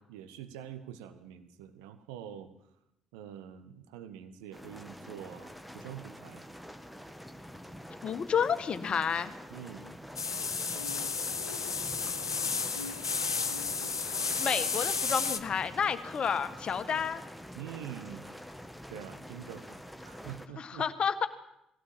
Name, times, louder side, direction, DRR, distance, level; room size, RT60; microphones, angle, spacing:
voice 1, 0.0-2.5 3.1-6.4 9.5-10.0 17.5-18.3 18.9-20.9, right 10 dB, 70° right, 10 dB, 1.5 m, -45 dB
sound 1, 4.5-20.5, equal, ahead, 1.7 m, -46 dB
voice 2, 8.0-9.3 14.4-17.2 20.6-21.3, left 7 dB, 45° left, 10 dB, 1.7 m, -30 dB
sound 2, 10.2-15.4, left 5 dB, 85° left, 0.7 m, -32 dB
20.0 x 17.0 x 7.6 m, 0.84 s
figure-of-eight pair, 45°, 2 cm